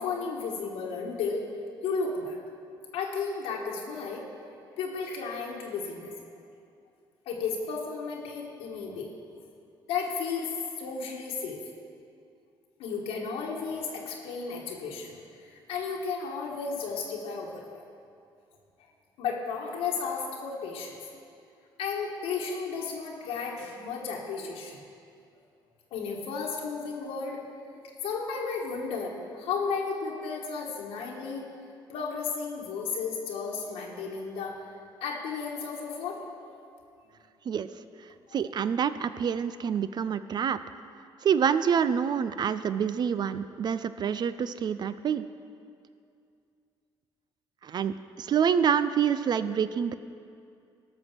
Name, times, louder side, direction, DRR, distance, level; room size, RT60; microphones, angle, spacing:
voice 1, 0.0-1.5 1.8-2.4 2.9-4.4 4.8-6.1 7.2-9.1 9.9-11.6 12.8-17.6 19.2-21.1 21.8-24.8 25.9-27.4 28.0-31.4 31.9-34.6 35.0-36.3 38.3-38.5, left 5 dB, 90° left, -2 dB, 1.4 m, -33 dB
voice 2, 38.3-40.6 41.2-45.2 47.6-49.9, right 7 dB, 50° right, 13 dB, 0.4 m, -27 dB
13.0 x 6.2 x 5.9 m, 2.4 s
cardioid pair, 80°, 9 cm